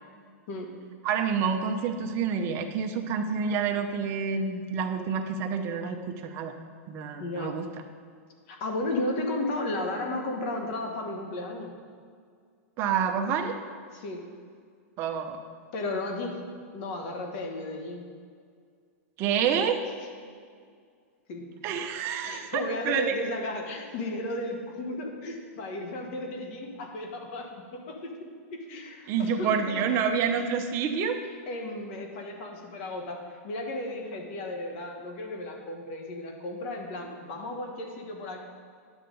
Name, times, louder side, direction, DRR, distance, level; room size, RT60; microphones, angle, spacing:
voice 1, 1.0-6.5 6.9-7.7 12.8-13.6 15.0-15.4 19.2-19.8 21.6-23.1 29.1-31.2, right 6 dB, 35° right, 5 dB, 0.7 m, -28 dB
voice 2, 7.2-7.6 8.5-11.7 13.9-14.2 15.7-16.4 16.7-18.0 21.3-21.5 22.2-28.1 28.5-29.6 30.4-30.5 31.5-33.2 33.4-38.4, left 2 dB, 50° left, 3 dB, 1.3 m, -34 dB
10.0 x 6.8 x 3.8 m, 2.1 s
supercardioid pair, 150°, 8 cm